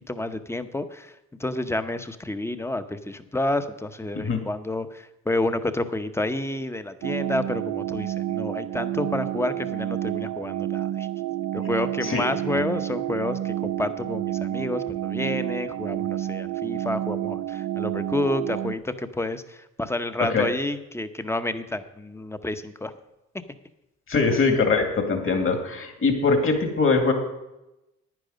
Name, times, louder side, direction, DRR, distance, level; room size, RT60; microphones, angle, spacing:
voice 1, 0.1-11.1 11.5-22.9 23.3-23.4, left 2 dB, 10° left, 10 dB, 0.8 m, -29 dB
sound 1, 7.0-18.7, right 12 dB, 65° right, 0.6 m, -29 dB
voice 2, 24.1-27.1, left 4 dB, 45° left, 5 dB, 2.3 m, -22 dB
10.5 x 9.8 x 5.2 m, 0.94 s
cardioid pair, 90°, 30 cm